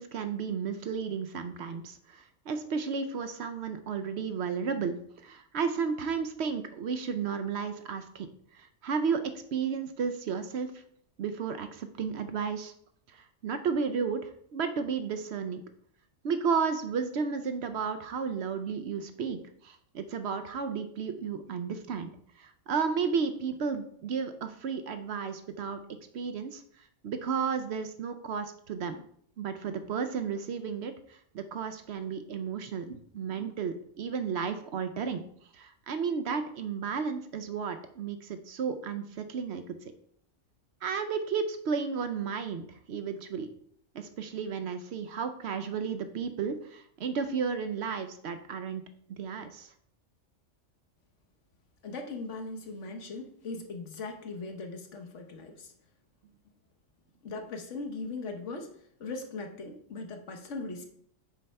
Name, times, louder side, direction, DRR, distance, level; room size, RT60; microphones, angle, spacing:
voice 1, 0.0-8.3 8.5-9.2 9.5-10.7 11.2-12.7 13.1-15.6 16.2-22.1 22.4-25.8 26.1-29.0 29.4-35.2 35.5-39.6 40.8-43.5 43.9-48.8 49.1-49.7, right 6 dB, 65° right, 9 dB, 0.8 m, -33 dB
voice 2, 51.8-55.7 57.2-58.7 59.0-60.8, left 3 dB, 70° left, 4 dB, 1.3 m, -39 dB
7.5 x 3.3 x 5.3 m, 0.65 s
omnidirectional pair, 1.3 m